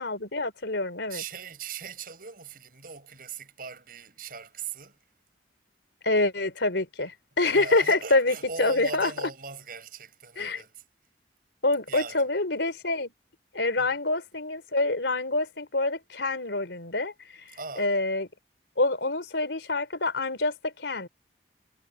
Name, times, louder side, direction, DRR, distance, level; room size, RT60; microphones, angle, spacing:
voice 1, 0.0-1.2 6.0-9.1 10.4-10.6 11.6-13.1 13.5-18.3 18.8-21.1, left 2 dB, 85° left, 3.8 m, -26 dB
voice 2, 1.1-5.0 7.5-10.8 11.9-12.3 13.8-13.9 17.6-17.9, right 5 dB, 55° right, 7.1 m, -39 dB
head